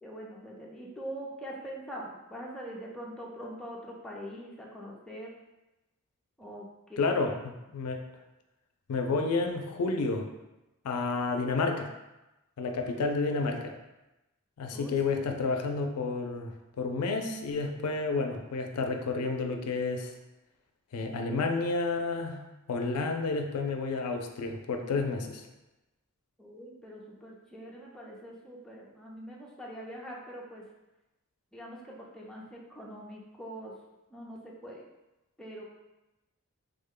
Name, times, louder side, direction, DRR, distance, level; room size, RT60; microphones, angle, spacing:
voice 1, 0.0-5.3 6.4-7.3 14.7-15.2 26.4-30.6 31.5-33.7 34.1-34.8 35.4-35.6, equal, 5° left, -4 dB, 0.5 m, -43 dB
voice 2, 7.0-7.3 7.7-8.0 8.9-10.3 10.8-11.9 12.6-13.7 14.6-16.5 16.8-20.1 20.9-22.4 22.7-25.4, left 3 dB, 75° left, 4 dB, 0.4 m, -30 dB
3.5 x 2.1 x 3.6 m, 1.0 s
head